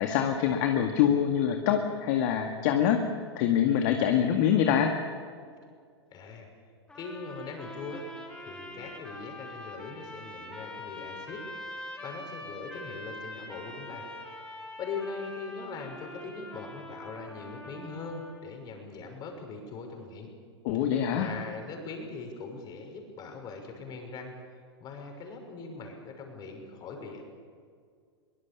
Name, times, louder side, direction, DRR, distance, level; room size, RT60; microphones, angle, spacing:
voice 1, 0.0-3.0 3.4-4.9 20.6-21.3, left 9 dB, 45° left, 4 dB, 2.0 m, -25 dB
voice 2, 6.1-6.5 6.9-8.0 8.4-11.4 11.7-14.1 14.8-20.3 21.2-24.3 24.8-27.2, left 4 dB, 30° left, 4 dB, 6.2 m, -41 dB
sound 1, 6.9-18.4, left 1 dB, 5° left, 5.3 m, -44 dB
23.5 x 23.5 x 7.0 m, 2.1 s
figure-of-eight pair, 100°, 14 cm